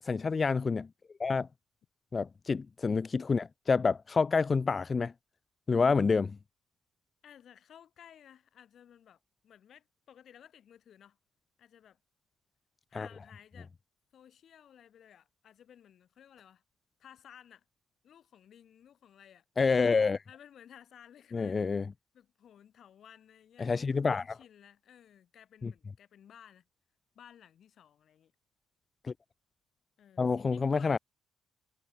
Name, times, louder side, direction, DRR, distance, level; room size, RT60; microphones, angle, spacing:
voice 1, 0.0-0.9 1.2-1.5 2.1-5.1 5.7-6.4 12.9-13.1 19.6-20.2 21.3-21.9 23.6-24.4 25.6-25.7 29.0-29.1 30.2-31.0, left 4 dB, 35° left, 0.3 m, -28 dB
voice 2, 7.2-11.2 11.6-12.0 12.9-13.7 14.1-16.6 17.0-17.6 18.0-19.4 20.3-21.7 22.1-26.7 27.1-28.3 30.0-31.0, left 9 dB, 65° left, 4.5 m, -57 dB
cardioid pair, 90°, 0 cm